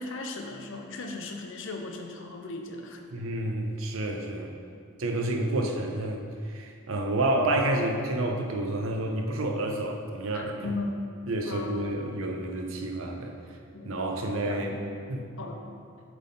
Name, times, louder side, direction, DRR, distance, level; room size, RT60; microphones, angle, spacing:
voice 1, 0.0-3.0 10.3-11.0 11.4-11.9 13.7-13.9 14.4-14.9 15.4-15.7, left 2 dB, 65° left, 3 dB, 0.7 m, -37 dB
voice 2, 3.1-4.5 5.0-10.7 11.3-13.3 13.8-14.8 15.1-15.2, right 1 dB, 75° right, 2 dB, 0.7 m, -29 dB
8.0 x 3.7 x 3.9 m, 2.3 s
head